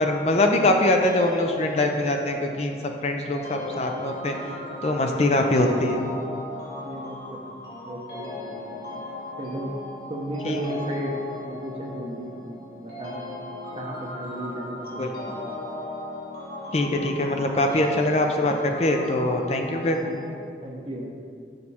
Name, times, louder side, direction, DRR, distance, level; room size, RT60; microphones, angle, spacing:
voice 1, 0.0-4.4 4.8-6.0 10.4-10.6 15.0-15.1 16.7-20.0, left 1 dB, 35° left, 3 dB, 0.5 m, -23 dB
sound 1, 1.0-20.3, left 2 dB, 55° left, 1.6 m, -37 dB
voice 2, 6.8-7.6 7.8-8.6 9.4-9.8 10.1-11.2 11.4-12.3 12.7-13.3 13.8-15.3 20.0-20.3 20.6-21.1, right 1 dB, 30° right, 1 dB, 0.8 m, -34 dB
6.5 x 5.7 x 4.2 m, 2.1 s
head